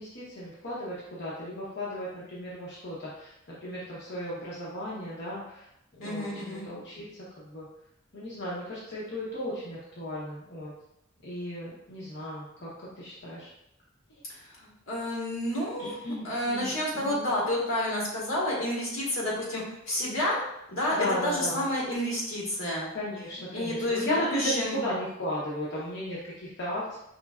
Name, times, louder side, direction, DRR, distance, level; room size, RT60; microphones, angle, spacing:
voice 1, 0.0-5.6 6.0-7.1 7.4-7.7 8.1-10.7 11.2-12.7 13.0-13.5 15.8-17.2 20.9-21.7 22.9-27.0, left 1 dB, 60° left, -7 dB, 0.8 m, -35 dB
voice 2, 6.0-6.7 14.6-15.9 16.2-20.4 20.7-22.9 23.5-24.8, left 1 dB, 80° left, -5 dB, 1.5 m, -30 dB
5.2 x 3.2 x 2.4 m, 0.82 s
head